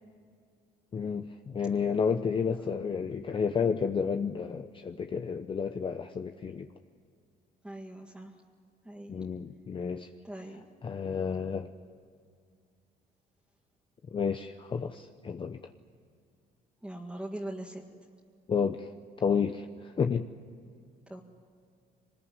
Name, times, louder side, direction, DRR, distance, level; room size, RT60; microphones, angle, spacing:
voice 1, 0.9-6.7 9.1-10.1 10.8-11.7 14.1-15.7 18.5-18.9 19.2-20.3, left 6 dB, 30° left, 7 dB, 0.8 m, -31 dB
voice 2, 7.6-8.4 8.8-9.2 10.2-10.7 16.8-17.8 21.1-21.2, right 1 dB, 5° right, -1 dB, 1.9 m, -41 dB
23.0 x 20.5 x 9.7 m, 2.2 s
cardioid pair, 110°, 17 cm